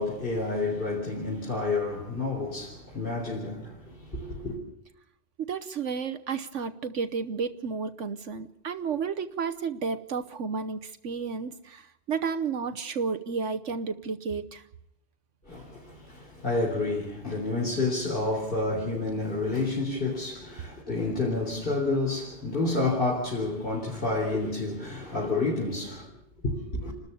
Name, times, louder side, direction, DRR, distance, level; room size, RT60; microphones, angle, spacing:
voice 1, 0.0-4.6 15.5-26.1 26.4-26.9, left 3 dB, 40° left, 4.4 m, -29 dB
voice 2, 5.4-14.6, right 5 dB, 65° right, 1.3 m, -32 dB
30.0 x 13.0 x 7.0 m
omnidirectional pair, 1.4 m